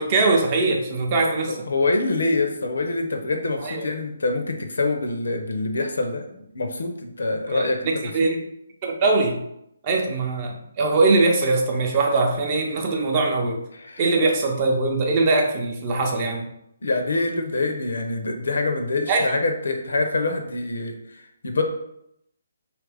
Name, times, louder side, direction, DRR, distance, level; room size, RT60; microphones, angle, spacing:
voice 1, 0.0-1.6 3.6-3.8 7.5-8.4 8.8-9.4 9.8-13.6 14.0-16.5 19.1-19.3, right 3 dB, 35° right, 2 dB, 0.6 m, -21 dB
voice 2, 1.5-8.3 13.7-14.0 16.8-21.6, left 2 dB, 70° left, 5 dB, 0.5 m, -25 dB
2.9 x 2.5 x 3.3 m, 0.77 s
figure-of-eight pair, 145°, 0 cm